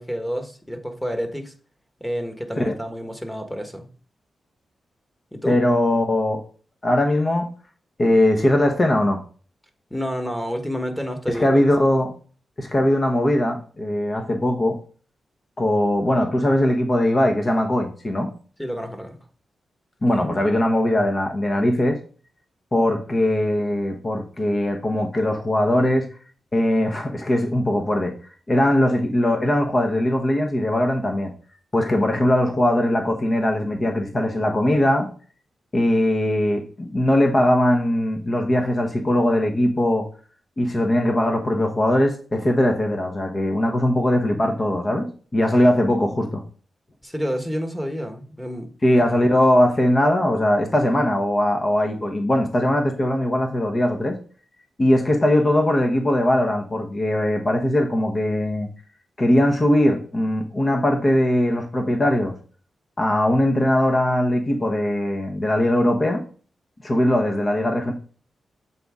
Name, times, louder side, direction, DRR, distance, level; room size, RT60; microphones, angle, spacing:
voice 1, 0.0-1.5 2.0-3.9 5.3-5.6 9.9-11.6 18.6-19.2 47.0-48.7, equal, 10° left, 1.4 m, -29 dB
voice 2, 5.4-6.4 6.8-7.5 8.0-9.2 11.3-12.1 12.6-14.8 15.6-18.3 20.0-22.0 22.7-26.1 26.5-28.1 28.5-31.3 31.7-35.1 35.7-40.1 40.6-45.1 45.3-46.4 48.8-54.2 54.8-58.7 59.2-62.3 63.0-66.2 66.8-67.9, left 1 dB, 35° left, 1.1 m, -20 dB
7.5 x 4.1 x 3.6 m
cardioid pair, 65°, 0 cm